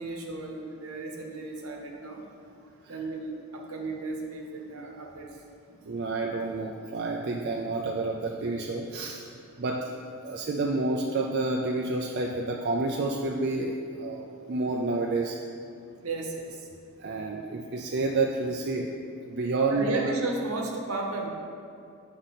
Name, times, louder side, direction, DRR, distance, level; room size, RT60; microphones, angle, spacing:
voice 1, 0.0-2.2 2.9-5.3 5.7-5.8 16.0-16.7 19.7-21.3, right 2 dB, 75° right, 1 dB, 1.0 m, -34 dB
voice 2, 5.9-9.3 9.6-9.9 10.2-15.4 17.0-18.9 19.2-20.1, right 3 dB, 50° right, 0 dB, 0.4 m, -29 dB
7.9 x 5.0 x 4.2 m, 2.4 s
head